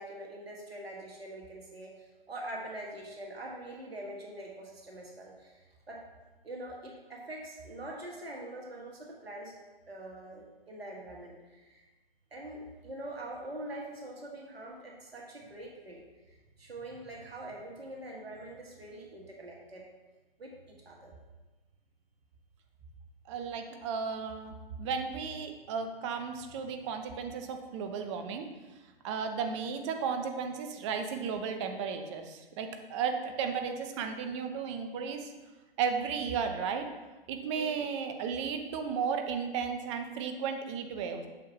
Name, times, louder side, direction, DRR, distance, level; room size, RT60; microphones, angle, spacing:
voice 1, 0.0-5.6 5.9-6.0 6.4-9.5 9.9-11.8 12.3-16.0 16.3-19.8 20.4-21.2 37.6-37.9, right 1 dB, 85° right, -2 dB, 1.8 m, -44 dB
voice 2, 23.3-28.5 29.0-35.3 35.8-36.9 37.3-41.3, right 6 dB, 30° right, 6 dB, 0.8 m, -34 dB
8.2 x 6.6 x 3.0 m, 1.2 s
figure-of-eight pair, 125°, 30 cm